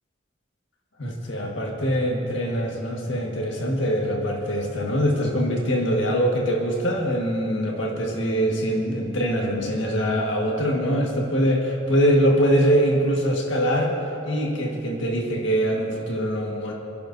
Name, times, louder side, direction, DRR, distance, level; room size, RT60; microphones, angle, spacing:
voice 1, 1.0-13.9 14.3-16.7, equal, 85° left, -1 dB, 1.7 m, -23 dB
29.5 x 11.0 x 2.7 m, 2.8 s
head